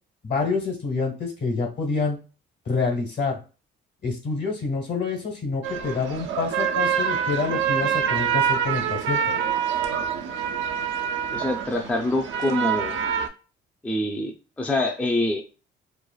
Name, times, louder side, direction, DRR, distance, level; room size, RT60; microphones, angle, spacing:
voice 1, 0.2-2.2 2.6-3.4 4.0-9.2, left 4 dB, 60° left, 2 dB, 1.2 m, -27 dB
sound 1, 5.6-13.3, right 8 dB, 75° right, 0.4 m, -26 dB
voice 2, 11.3-13.0 13.8-15.4, left 1 dB, 5° left, 2 dB, 0.4 m, -25 dB
3.2 x 2.1 x 2.3 m, 0.34 s
cardioid pair, 90°, 20 cm